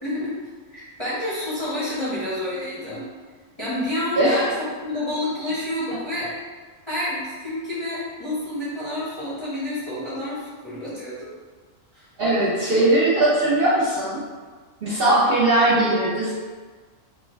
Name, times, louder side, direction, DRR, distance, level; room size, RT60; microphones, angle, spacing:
voice 1, 0.0-0.4 0.7-3.1 3.6-6.3 6.9-11.2 11.9-12.0, left 1 dB, 25° left, -11 dB, 0.7 m, -29 dB
voice 2, 4.2-4.5 12.2-14.2 14.8-16.3, right 1 dB, 55° right, -8 dB, 0.7 m, -19 dB
3.2 x 2.2 x 3.1 m, 1.4 s
omnidirectional pair, 1.4 m